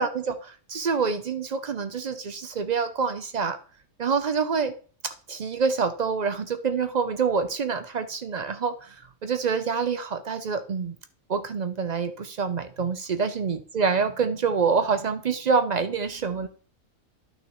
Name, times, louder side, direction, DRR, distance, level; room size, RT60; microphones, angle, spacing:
voice 1, 0.0-3.6 4.0-4.7 5.0-9.0 9.2-10.9 11.3-16.5, right 5 dB, 55° right, 10 dB, 0.4 m, -26 dB
11.5 x 6.2 x 3.0 m, 0.41 s
omnidirectional pair, 1.4 m